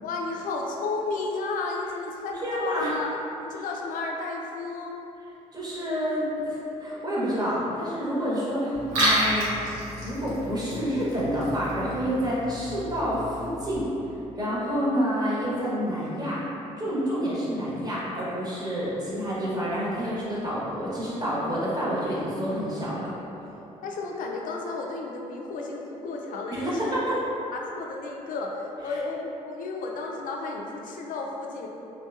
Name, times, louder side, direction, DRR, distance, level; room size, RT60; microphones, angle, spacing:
voice 1, 0.0-3.1 3.4-4.9 23.8-26.8 27.1-27.2 27.5-31.7, left 3 dB, 50° left, 0 dB, 0.4 m, -33 dB
voice 2, 2.4-2.9 5.5-9.6 10.0-13.9 14.4-16.4 16.8-23.1 26.5-27.2 28.9-29.0, equal, 20° right, -7 dB, 1.0 m, -28 dB
Liquid, 8.7-13.7, right 1 dB, 80° right, 0.7 m, -30 dB
3.4 x 2.2 x 2.5 m, 2.9 s
hypercardioid pair, 45°, 18 cm